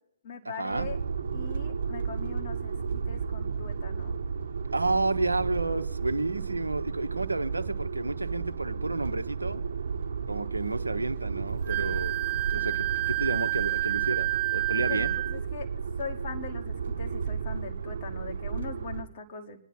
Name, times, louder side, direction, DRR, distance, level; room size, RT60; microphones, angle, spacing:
voice 1, 0.2-1.0 1.3-4.2 14.7-15.7 16.0-19.6, left 5 dB, 35° left, 3 dB, 1.7 m, -41 dB
sound 1, 0.7-19.0, right 5 dB, 50° right, 1.1 m, -33 dB
voice 2, 4.7-9.6 10.3-12.2 12.5-15.2, right 2 dB, 75° right, 9 dB, 0.7 m, -31 dB
Wind instrument woodwind instrument, 11.7-15.4, right 19 dB, 20° right, 0.7 m, -29 dB
25.5 x 10.0 x 4.4 m, 0.76 s
figure-of-eight pair, 125°, 0 cm